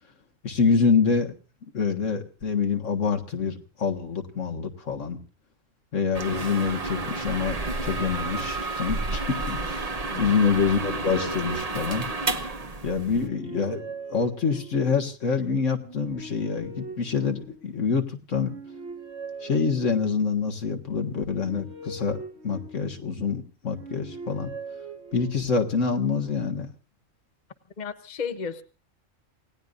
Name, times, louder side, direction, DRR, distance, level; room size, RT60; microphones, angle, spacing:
voice 1, 0.4-1.3 1.7-5.2 5.9-9.9 10.2-12.1 12.8-13.8 14.1-18.6 19.4-24.5 25.1-26.7, left 5 dB, 70° left, 3 dB, 2.0 m, -26 dB
sound 1, 6.1-13.3, right 3 dB, 30° right, 1.1 m, -31 dB
voice 2, 10.1-10.4 27.8-28.6, left 6 dB, 35° left, 8 dB, 1.1 m, -34 dB
sound 2, 10.4-12.5 13.0-15.0 15.7-17.8 18.3-20.3 21.0-23.2 23.7-25.7, right 2 dB, 55° right, 2.1 m, -42 dB
28.0 x 18.0 x 2.6 m, 0.35 s
omnidirectional pair, 1.3 m